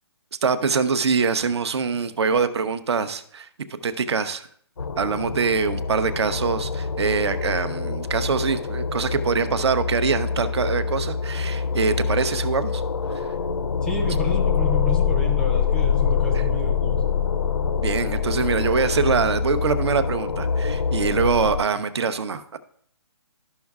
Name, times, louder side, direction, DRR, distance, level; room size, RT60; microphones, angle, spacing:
voice 1, 0.4-3.5 3.8-4.5 5.0-12.8 17.8-22.6, right 5 dB, 70° right, 11 dB, 0.7 m, -24 dB
sound 1, 4.8-21.6, left 6 dB, 85° left, 0.6 m, -25 dB
voice 2, 13.8-17.2, left 1 dB, 5° left, 4 dB, 0.5 m, -31 dB
13.0 x 5.5 x 2.4 m, 0.62 s
hypercardioid pair, 170°, 14 cm